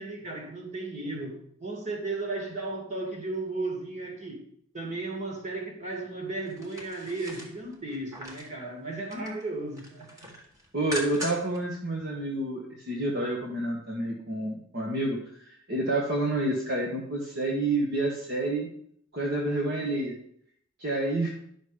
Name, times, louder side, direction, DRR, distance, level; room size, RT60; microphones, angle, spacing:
voice 1, 0.0-4.4 4.7-10.1, right 2 dB, 35° right, 0 dB, 2.6 m, -35 dB
sound 1, 6.5-8.5 8.9-9.4 9.7-11.6 12.0-12.1, equal, 15° right, 1.6 m, -40 dB
voice 2, 10.7-15.2 15.4-18.7 19.1-20.2 20.8-21.3, right 2 dB, 50° right, -2 dB, 1.6 m, -29 dB
11.5 x 6.4 x 5.1 m, 0.68 s
head